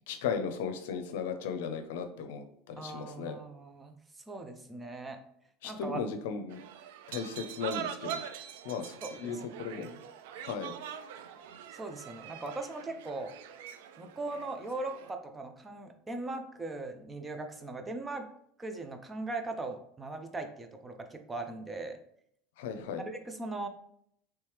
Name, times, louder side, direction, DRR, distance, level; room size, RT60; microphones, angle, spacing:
voice 1, 0.1-3.4 5.6-6.6 7.1-8.2 8.6-9.9 10.4-10.7 22.6-23.0, left 6 dB, 85° left, 7 dB, 0.5 m, -36 dB
voice 2, 2.8-5.2 5.6-6.0 9.0-10.0 11.7-13.3 14.0-18.3 18.6-22.0 23.0-23.7, right 2 dB, 15° right, 6 dB, 0.4 m, -39 dB
sound 1, 6.5-15.1, right 9 dB, 80° right, 0.3 m, -43 dB
3.1 x 3.0 x 3.3 m, 0.69 s
supercardioid pair, 145°, 0 cm